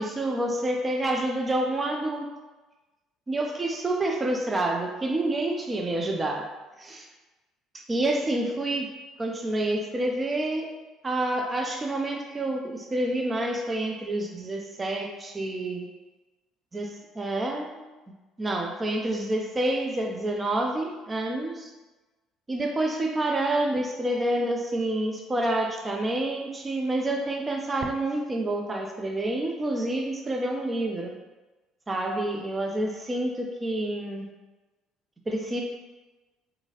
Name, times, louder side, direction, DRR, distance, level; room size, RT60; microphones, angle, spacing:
voice 1, 0.0-2.3 3.3-6.5 6.8-7.1 7.9-8.9 9.2-10.7 11.0-15.9 16.7-17.8 18.4-21.7 22.5-31.2 31.9-34.3 35.3-35.6, right 1 dB, 25° right, 1 dB, 0.5 m, -28 dB
3.7 x 2.7 x 2.8 m, 1.2 s
hypercardioid pair, 60°, 0 cm